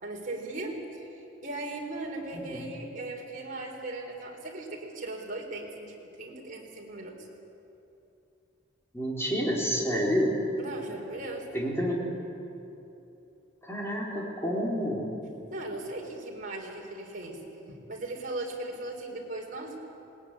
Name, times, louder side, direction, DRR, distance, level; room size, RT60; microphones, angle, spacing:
voice 1, 0.0-7.3 10.6-11.5 15.5-19.8, right 2 dB, 45° right, 0 dB, 4.1 m, -38 dB
voice 2, 8.9-10.3 11.5-12.0 13.6-15.1, equal, 15° left, -3 dB, 4.0 m, -29 dB
20.5 x 19.5 x 9.9 m, 2.9 s
head